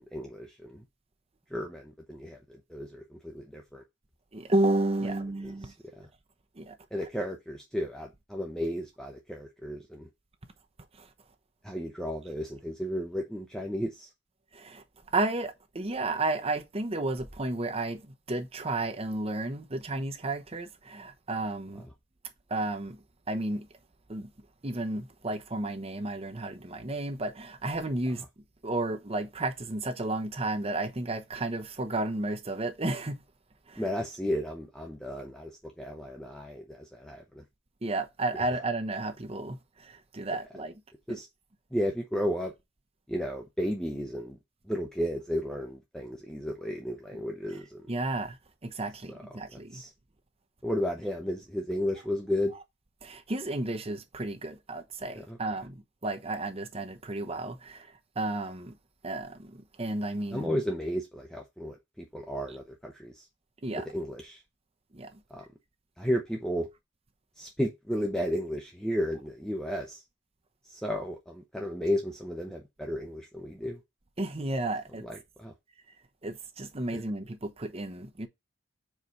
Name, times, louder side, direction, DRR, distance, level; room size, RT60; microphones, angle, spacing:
voice 1, 0.1-0.8 1.5-3.8 5.4-5.5 6.0-6.1 6.9-10.1 11.6-14.1 33.8-35.5 35.8-37.4 38.3-38.5 40.3-40.4 41.1-41.3 41.7-42.5 43.1-44.4 44.7-47.8 49.1-49.2 49.7-49.9 50.6-52.5 55.2-55.4 60.3-63.3 63.7-64.4 65.3-65.4 66.0-66.7 67.4-70.0 70.6-73.8 75.0-75.5, equal, 5° left, 0.8 m, -33 dB
voice 2, 4.3-5.7 6.6-6.8 11.0-11.1 14.5-14.8 15.1-21.9 22.5-23.0 23.3-23.7 24.1-24.3 24.6-28.2 28.6-33.2 33.7-33.8 37.8-40.7 41.1-41.2 47.9-48.4 48.6-49.8 53.0-58.7 59.0-60.5 63.6-63.8 64.9-65.2 74.2-75.0 76.2-78.3, right 2 dB, 30° right, 1.0 m, -32 dB
4.8 x 4.0 x 5.6 m
head